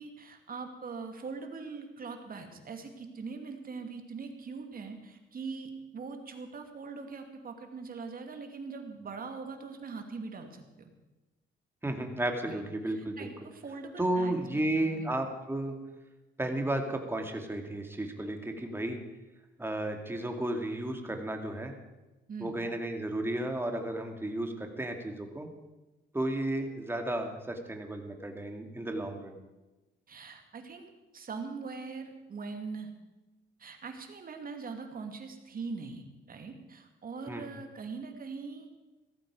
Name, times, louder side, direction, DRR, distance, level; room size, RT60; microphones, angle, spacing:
voice 1, 0.0-10.9 12.5-15.1 22.3-22.7 30.1-32.9 33.6-38.7, right 4 dB, 45° right, 5 dB, 2.6 m, -42 dB
voice 2, 11.8-13.3 14.0-15.8 16.4-19.0 19.6-21.7 22.4-25.5 26.1-29.3 37.3-37.4, right 1 dB, 10° right, 4 dB, 2.5 m, -33 dB
17.0 x 14.0 x 5.0 m, 1.1 s
cardioid pair, 90°, 20 cm